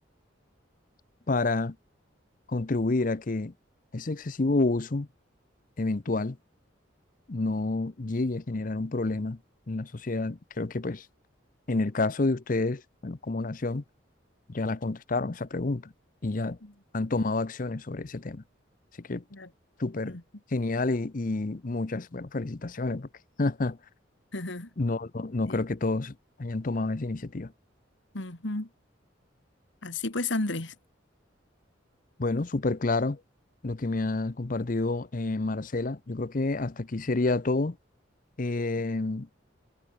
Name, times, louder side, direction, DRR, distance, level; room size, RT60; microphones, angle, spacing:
voice 1, 1.3-1.8 2.5-3.5 3.9-5.1 5.8-6.4 7.3-9.4 9.7-11.1 11.7-13.8 14.5-15.9 16.2-16.6 16.9-18.4 19.0-19.2 19.8-20.2 20.5-23.1 23.4-23.8 24.8-27.5 32.2-33.2 33.6-37.8 38.4-39.3, left 2 dB, 45° left, 0.7 m, -29 dB
voice 2, 24.3-24.7 25.5-25.6 28.1-28.7 29.8-30.7, left 2 dB, 75° left, 2.3 m, -32 dB
head